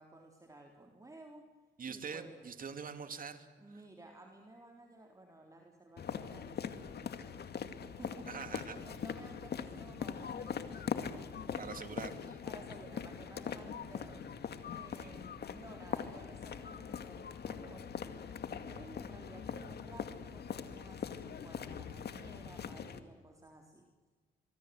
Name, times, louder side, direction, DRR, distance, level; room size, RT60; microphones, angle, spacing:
voice 1, 0.0-1.5 1.9-2.4 3.6-7.4 7.8-10.7 11.3-12.2 12.4-14.3 14.7-18.0 18.5-23.9, right 2 dB, 15° right, 2 dB, 3.7 m, -55 dB
voice 2, 1.8-3.5 8.3-8.7 11.6-12.4, right 6 dB, 45° right, 9 dB, 2.9 m, -44 dB
sound 1, 6.0-23.0, left 7 dB, 55° left, 2.2 m, -42 dB
26.0 x 23.0 x 7.8 m, 1.4 s
cardioid pair, 90°, 20 cm